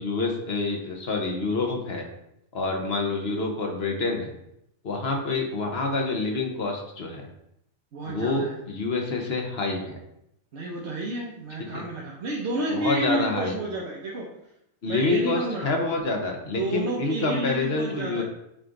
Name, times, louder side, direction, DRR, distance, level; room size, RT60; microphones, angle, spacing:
voice 1, 0.0-2.0 2.5-4.3 4.8-7.2 8.1-10.0 11.7-11.8 12.7-13.6 14.8-18.2, left 3 dB, 50° left, 2 dB, 1.2 m, -27 dB
voice 2, 7.9-8.5 10.5-14.3 14.9-15.7 16.6-18.2, right 2 dB, 55° right, -4 dB, 1.1 m, -30 dB
8.7 x 3.2 x 3.8 m, 0.81 s
omnidirectional pair, 1.4 m